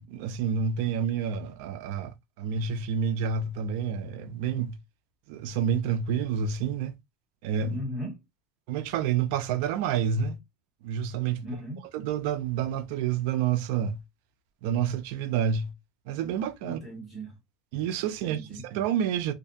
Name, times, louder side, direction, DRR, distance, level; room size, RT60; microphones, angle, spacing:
voice 1, 0.0-4.8 5.3-6.9 7.4-7.8 8.7-10.4 10.8-11.4 11.9-14.0 14.6-15.7 16.1-16.8 17.7-19.3, right 7 dB, 60° right, 0.4 m, -29 dB
voice 2, 7.7-8.2 11.4-11.8 16.6-17.3 18.2-18.6, equal, ahead, 1.0 m, -37 dB
2.5 x 2.2 x 2.5 m
cardioid pair, 175°, 0 cm